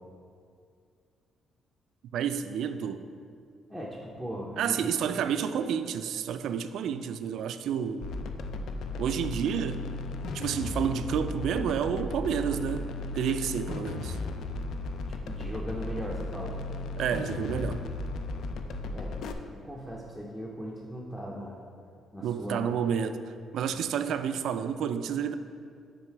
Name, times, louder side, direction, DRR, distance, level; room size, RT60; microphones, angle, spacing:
voice 1, 2.1-3.0 4.6-8.1 9.0-9.8 10.3-12.9 13.1-14.2 17.0-17.8 22.2-23.2 23.5-25.3, right 8 dB, 65° right, 10 dB, 0.3 m, -30 dB
voice 2, 3.7-5.1 15.2-16.5 18.6-19.1 19.5-21.6 22.1-22.7, equal, 5° left, -5 dB, 0.6 m, -39 dB
sound 1, 8.0-19.3, left 2 dB, 65° left, 0.4 m, -35 dB
9.0 x 4.0 x 4.5 m, 2.3 s
cardioid pair, 170°, 0 cm